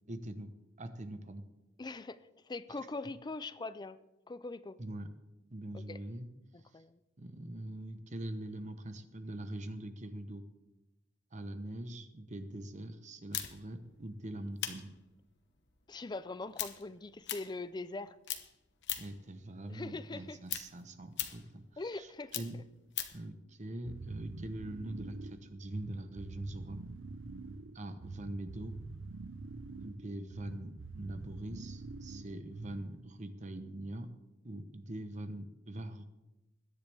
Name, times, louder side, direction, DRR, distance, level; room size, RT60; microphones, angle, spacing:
voice 1, 0.1-0.5 0.8-1.5 2.7-2.8 4.8-5.1 5.5-6.3 7.2-10.4 11.3-14.9 19.0-22.1 22.4-22.6 23.1-26.8 27.7-28.7 29.8-34.1 34.4-36.0, right 1 dB, 35° right, 9 dB, 0.9 m, -43 dB
voice 2, 1.8-2.2 2.4-4.0 4.3-4.8 5.7-6.0 6.7-7.0 15.9-18.2 19.7-20.4 21.8-22.3, left 3 dB, 20° left, 15 dB, 0.5 m, -42 dB
sound 1, 13.3-18.0 18.2-19.3 19.6-23.3, left 11 dB, 60° left, 1.1 m, -41 dB
sound 2, 23.8-33.1, right 3 dB, 70° right, 0.6 m, -46 dB
21.0 x 10.0 x 3.5 m, 0.98 s
head